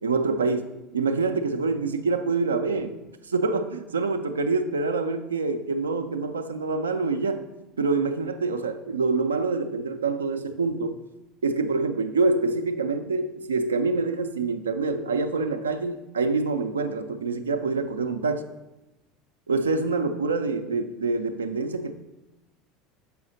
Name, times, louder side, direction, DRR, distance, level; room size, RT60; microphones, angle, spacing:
voice 1, 0.0-3.0 3.3-7.4 7.8-11.0 11.4-18.5 19.5-21.9, right 3 dB, 75° right, 8 dB, 0.4 m, -26 dB
6.9 x 5.5 x 3.9 m, 1.0 s
figure-of-eight pair, 70°, 0 cm